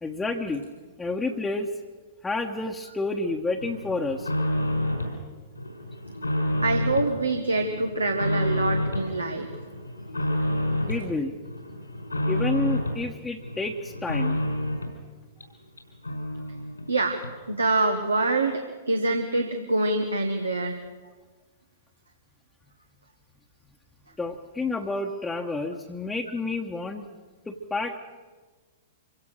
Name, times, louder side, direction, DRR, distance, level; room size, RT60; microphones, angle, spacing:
voice 1, 0.0-0.6 1.0-1.7 2.2-4.3 10.8-11.3 12.3-14.4 24.2-27.1 27.5-28.0, left 3 dB, 10° left, 1 dB, 1.2 m, -30 dB
sound 1, 3.6-5.2 5.5-7.1 7.5-9.1 9.5-11.1 11.4-13.0 13.4-15.0 15.4-15.5 15.8-15.9 16.0-16.9 17.2-17.3, left 1 dB, 85° left, 4.8 m, -29 dB
voice 2, 6.6-9.5 16.9-17.2 17.5-18.6 18.9-20.8, right 2 dB, 85° right, 4 dB, 1.5 m, -25 dB
25.5 x 16.5 x 6.4 m, 1.3 s
figure-of-eight pair, 105°, 0 cm